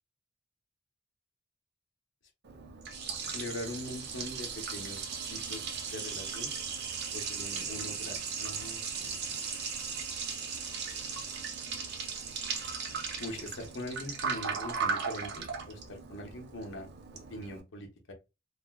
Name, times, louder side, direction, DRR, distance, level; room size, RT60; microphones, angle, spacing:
Liquid, 2.4-17.6, right 5 dB, 60° right, 0.6 m, -37 dB
voice 1, 3.3-5.0 5.3-6.5 7.1-9.2 13.2-16.9 17.3-18.1, left 1 dB, 70° left, 0.8 m, -42 dB
3.3 x 2.4 x 2.2 m
head